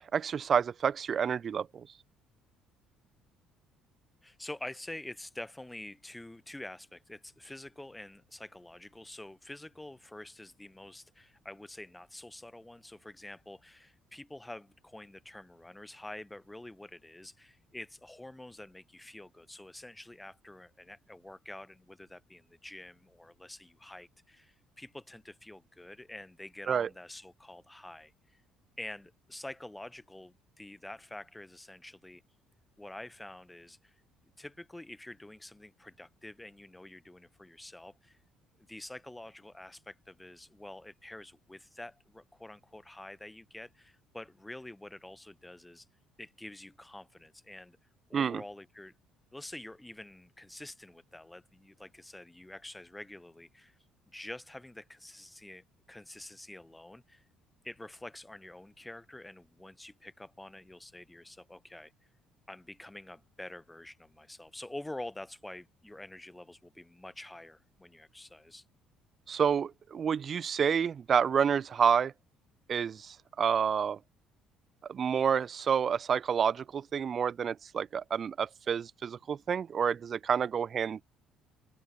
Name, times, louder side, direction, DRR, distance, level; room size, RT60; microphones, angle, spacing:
voice 1, 0.0-1.9 26.7-26.9 48.1-48.4 69.3-72.1 72.7-74.0 74.9-81.0, right 7 dB, 35° right, 0.5 m, -29 dB
voice 2, 4.2-28.4 28.8-32.2 32.8-34.0 34.4-38.2 38.7-45.9 46.2-47.8 48.1-48.9 49.3-53.8 54.1-57.2 57.6-61.9 62.5-68.6, left 1 dB, 5° left, 4.7 m, -47 dB
open air
cardioid pair, 155°, 0 cm